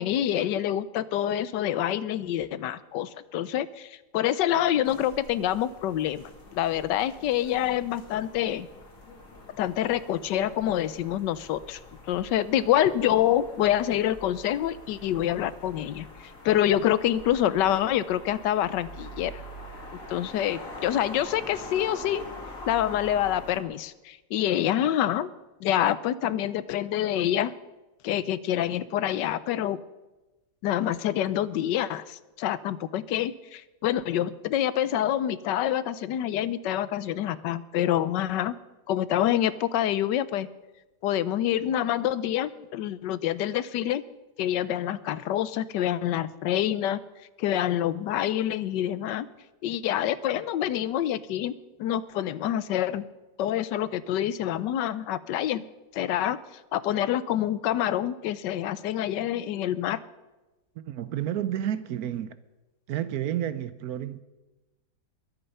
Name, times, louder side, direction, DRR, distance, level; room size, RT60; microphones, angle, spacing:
voice 1, 0.0-8.7 9.6-11.8 12.1-19.3 20.1-22.3 22.7-25.3 25.6-27.5 28.0-29.8 30.6-38.6 38.9-40.5 41.0-44.0 44.4-47.0 47.4-49.3 49.6-51.5 51.8-53.0 53.4-55.7 55.9-56.4 56.7-60.0, left 11 dB, 85° left, 1.3 m, -26 dB
sound 1, 4.8-23.6, left 2 dB, 50° left, 2.8 m, -44 dB
voice 2, 60.8-62.4 62.9-64.2, right 11 dB, 70° right, 1.0 m, -30 dB
22.0 x 8.9 x 5.5 m
omnidirectional pair, 1.9 m